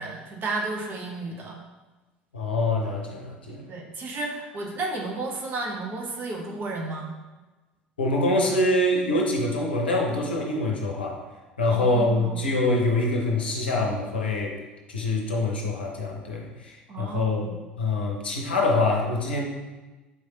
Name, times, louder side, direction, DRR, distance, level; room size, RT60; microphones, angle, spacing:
voice 1, 0.0-1.6 3.7-7.1 11.7-12.4 16.9-17.6, right 3 dB, 40° right, 0 dB, 0.8 m, -32 dB
voice 2, 2.3-3.7 8.0-11.2 11.6-14.6 14.9-17.5 17.8-19.5, left 2 dB, 75° left, 0 dB, 0.6 m, -25 dB
4.5 x 3.2 x 2.8 m, 1.2 s
figure-of-eight pair, 65°, 5 cm